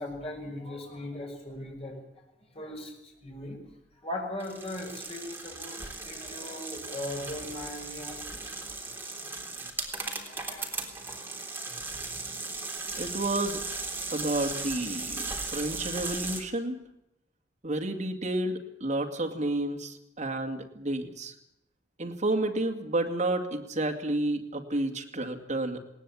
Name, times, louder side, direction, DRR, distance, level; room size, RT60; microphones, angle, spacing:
voice 1, 0.0-2.0 2.5-3.0 3.2-3.6 4.0-8.4 10.0-10.9, left 1 dB, 35° left, 1 dB, 6.0 m, -39 dB
sound 1, 4.4-16.4, right 3 dB, 10° right, 3.5 m, -37 dB
voice 2, 13.0-13.6 14.1-16.8 17.6-21.3 22.0-25.8, right 2 dB, 40° right, 4 dB, 2.4 m, -30 dB
19.5 x 18.5 x 8.6 m, 0.80 s
head